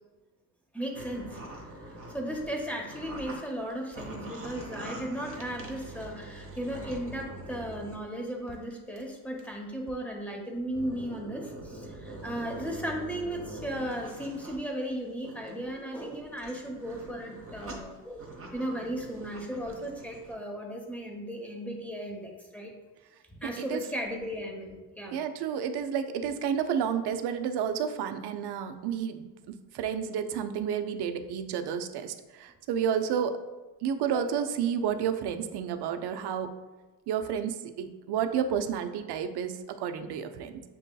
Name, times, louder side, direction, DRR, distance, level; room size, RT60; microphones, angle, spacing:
voice 1, 0.7-1.4 2.1-18.2 18.5-22.7 23.3-25.2 34.0-34.3, equal, 5° left, 0 dB, 0.8 m, -36 dB
sound 1, 0.9-3.4 3.7-8.0 8.5-9.0 9.4-9.5 9.9-10.0 10.6-14.6 15.0-20.3, right 2 dB, 30° right, 0.9 m, -44 dB
voice 2, 23.4-23.8 25.1-33.4 33.8-36.6 37.1-40.6, right 8 dB, 65° right, 9 dB, 0.5 m, -31 dB
7.0 x 2.7 x 2.2 m, 1.2 s
cardioid pair, 95°, 43 cm